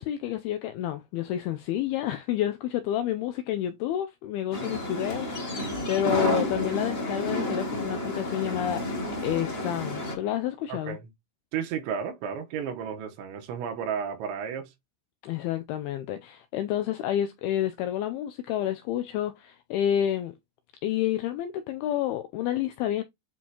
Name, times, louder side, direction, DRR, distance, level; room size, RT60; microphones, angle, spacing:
voice 1, 0.0-8.8 9.2-11.0 15.2-20.4 20.8-23.0, left 11 dB, 90° left, 2.2 m, -29 dB
sound 1, 4.5-10.1, left 1 dB, 60° left, 0.6 m, -30 dB
voice 2, 10.7-11.1 11.5-14.7, right 7 dB, 90° right, 3.5 m, -33 dB
9.0 x 4.3 x 2.9 m
omnidirectional pair, 5.1 m